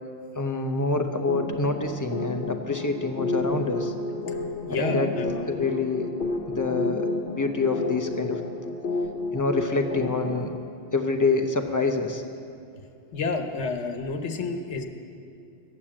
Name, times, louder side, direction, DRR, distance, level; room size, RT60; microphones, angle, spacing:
voice 1, 0.3-3.9 4.7-5.1 5.5-6.1 6.5-8.4 9.3-10.5 10.9-12.2, left 3 dB, 20° left, 5 dB, 0.7 m, -26 dB
sound 1, 1.3-10.6, left 3 dB, 55° left, 1.0 m, -31 dB
voice 2, 4.6-5.3 12.8-12.9 13.1-14.9, left 4 dB, 90° left, 5 dB, 1.3 m, -30 dB
13.5 x 8.8 x 7.4 m, 2.5 s
omnidirectional pair, 1.1 m